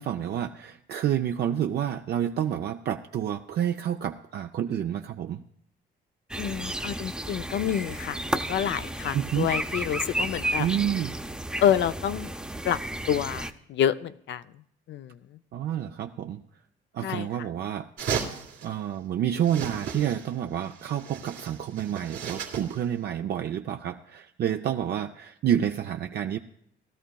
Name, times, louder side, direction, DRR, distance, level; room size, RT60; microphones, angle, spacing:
voice 1, 0.0-5.4 9.1-9.5 10.6-11.2 15.5-16.4 16.9-17.9 18.2-18.3 18.6-26.4, right 10 dB, 55° right, 5 dB, 0.5 m, -29 dB
voice 2, 6.3-10.7 11.6-12.3 12.6-12.8 13.1-14.4 14.9-15.2 17.0-17.3, left 10 dB, 65° left, 12 dB, 0.5 m, -28 dB
sound 1, 6.3-13.5, right 1 dB, 5° right, 0.6 m, -32 dB
sound 2, 18.0-18.7 19.4-20.3 20.6-22.8, right 7 dB, 85° right, 2.2 m, -35 dB
18.5 x 12.5 x 2.3 m, 0.73 s
cardioid pair, 90°, 20 cm